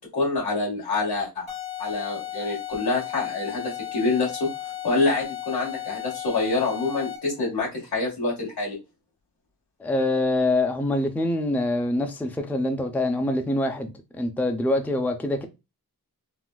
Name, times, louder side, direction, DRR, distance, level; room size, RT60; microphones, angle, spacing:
voice 1, 0.1-1.5 1.8-8.8, left 3 dB, 85° left, 1.7 m, -26 dB
sound 1, 1.5-7.4, left 12 dB, 70° left, 1.6 m, -35 dB
voice 2, 9.8-15.5, left 1 dB, 5° left, 0.4 m, -25 dB
3.8 x 2.2 x 2.2 m
wide cardioid pair, 100°, 37 cm